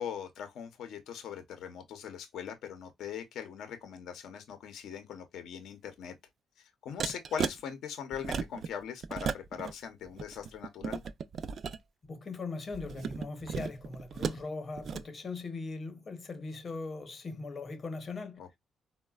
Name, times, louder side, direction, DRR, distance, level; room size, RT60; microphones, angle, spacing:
voice 1, 0.0-6.1 6.6-11.0 18.4-18.6, left 8 dB, 75° left, 0.6 m, -41 dB
sound 1, 7.0-7.6 8.1-8.7 9.0-9.7 10.1-11.8 12.7-14.4 14.8-15.0, right 6 dB, 55° right, 0.3 m, -35 dB
voice 2, 12.0-18.4, left 3 dB, 40° left, 0.8 m, -40 dB
3.8 x 2.1 x 2.2 m
cardioid pair, 90°, 0 cm